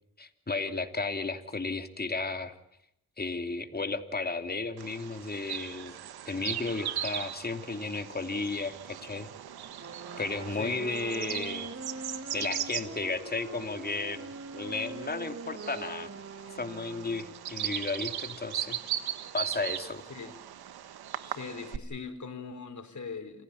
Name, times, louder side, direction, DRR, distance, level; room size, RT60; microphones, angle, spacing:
voice 1, 0.2-2.5 3.2-6.0 6.2-9.3 10.2-11.7 12.3-16.1 16.6-18.8 19.3-20.0, left 3 dB, 25° left, 6 dB, 2.7 m, -34 dB
Bird vocalization bird call bird song, 4.8-21.8, right 11 dB, 80° right, 1.5 m, -39 dB
Wind instrument woodwind instrument, 9.7-17.6, right 3 dB, 40° right, 2.7 m, -43 dB
voice 2, 21.2-23.4, left 5 dB, 50° left, 8 dB, 4.3 m, -40 dB
27.5 x 15.5 x 9.7 m, 0.81 s
supercardioid pair, 55°, 37 cm